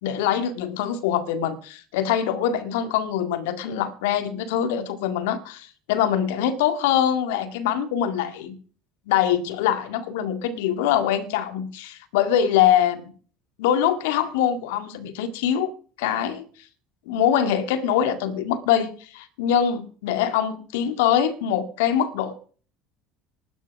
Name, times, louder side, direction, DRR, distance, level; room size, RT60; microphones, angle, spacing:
voice 1, 0.0-8.5 9.1-13.1 13.6-15.7 16.0-16.4 17.1-22.3, left 9 dB, 70° left, 2.0 m, -23 dB
14.0 x 12.5 x 6.1 m
hypercardioid pair, 65°, 0 cm